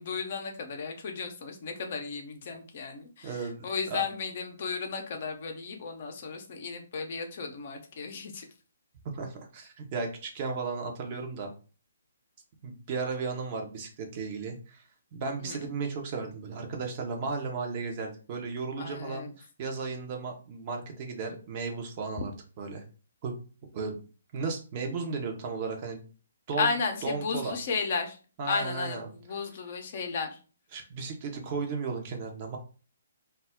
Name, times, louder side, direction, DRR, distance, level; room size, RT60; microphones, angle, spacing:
voice 1, 0.0-8.5 15.4-15.6 18.8-19.3 26.6-28.2 28.4-30.4, left 4 dB, 45° left, 4 dB, 0.6 m, -34 dB
voice 2, 3.2-4.0 9.0-11.5 12.6-14.8 15.1-22.8 23.2-23.4 23.7-24.0 24.3-26.0 26.5-26.8 27.0-27.6 28.4-29.4 30.7-32.6, right 4 dB, 35° right, 3 dB, 0.7 m, -35 dB
2.3 x 2.0 x 3.6 m, 0.36 s
figure-of-eight pair, 130°, 0 cm